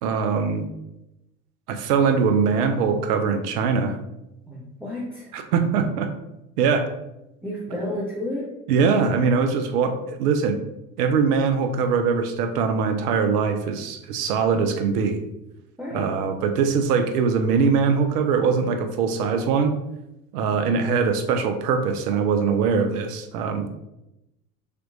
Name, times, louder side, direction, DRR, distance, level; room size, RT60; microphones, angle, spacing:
voice 1, 0.0-0.7 1.7-4.0 5.3-6.1 6.6-6.9 8.7-10.6 11.0-15.2 15.9-19.7 20.3-23.7, right 5 dB, 65° right, 6 dB, 0.5 m, -22 dB
voice 2, 4.5-5.3 7.4-8.5 15.8-16.2, left 1 dB, 5° right, -8 dB, 0.7 m, -31 dB
3.3 x 2.9 x 2.5 m, 0.90 s
figure-of-eight pair, 75°, 50 cm